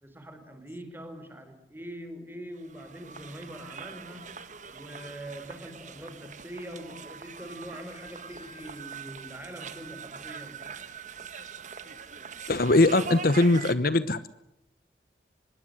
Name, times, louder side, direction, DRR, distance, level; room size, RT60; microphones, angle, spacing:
voice 1, 0.0-4.4 4.7-10.7, right 1 dB, 10° right, 8 dB, 4.3 m, -43 dB
sound 1, 2.6-13.8, right 5 dB, 45° right, 1.7 m, -42 dB
voice 2, 12.5-14.2, left 2 dB, 55° left, 14 dB, 1.0 m, -21 dB
25.0 x 21.0 x 7.8 m, 0.82 s
head